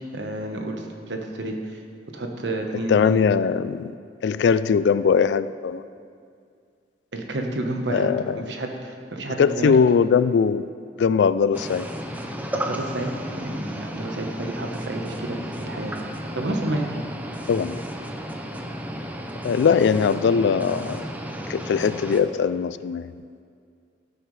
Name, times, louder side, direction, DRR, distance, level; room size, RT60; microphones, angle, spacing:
voice 1, 0.1-1.8 2.1-3.3 7.1-8.1 8.4-9.8 12.5-16.0 16.3-17.0, right 1 dB, 75° right, 3 dB, 1.2 m, -30 dB
voice 2, 2.9-3.9 4.2-5.8 7.9-8.4 9.4-10.7 11.0-11.9 17.5-17.8 19.4-21.0 21.5-23.1, left 6 dB, 70° left, 15 dB, 0.3 m, -20 dB
sound 1, 11.5-22.2, equal, 10° right, 0.7 m, -33 dB
16.5 x 7.9 x 3.2 m, 2.3 s
head